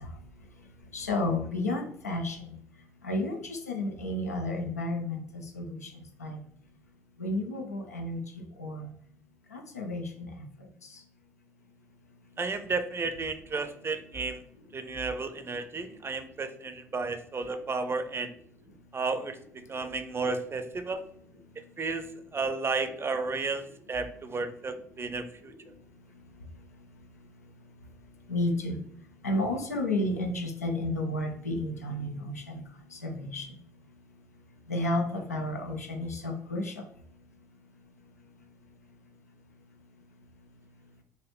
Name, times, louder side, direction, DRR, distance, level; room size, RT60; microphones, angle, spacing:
voice 1, 0.9-2.4 3.0-5.9 6.2-6.4 7.2-8.2 8.6-8.9 9.5-10.3 28.3-28.8 29.2-32.6 32.9-33.5 34.7-36.7, left 1 dB, 90° left, 2 dB, 0.5 m, -31 dB
voice 2, 12.4-14.4 14.7-18.3 18.9-19.4 19.7-21.0 21.8-25.5, right 4 dB, 30° right, 9 dB, 0.5 m, -33 dB
4.0 x 2.6 x 3.0 m, 0.67 s
figure-of-eight pair, 50°, 8 cm